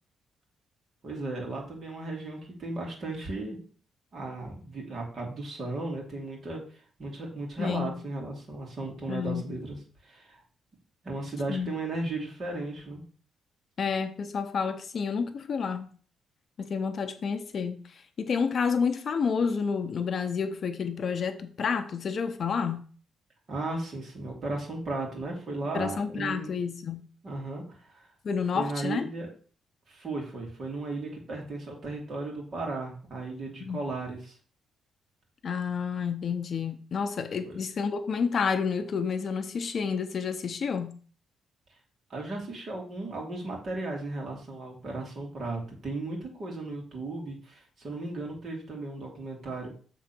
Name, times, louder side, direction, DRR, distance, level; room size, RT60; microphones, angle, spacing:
voice 1, 1.0-3.6 4.1-6.6 7.0-9.8 10.0-10.4 11.0-13.0 23.5-26.5 27.2-28.1 28.5-29.3 29.9-34.4 37.5-37.6 42.1-49.7, right 2 dB, 35° right, 2.6 m, -35 dB
voice 2, 7.6-8.0 9.1-9.5 11.5-11.8 13.8-15.9 16.6-22.8 25.7-27.1 28.2-29.1 33.6-33.8 35.4-40.9, left 6 dB, 45° left, 0.6 m, -30 dB
7.3 x 3.7 x 6.0 m
cardioid pair, 150°, 0 cm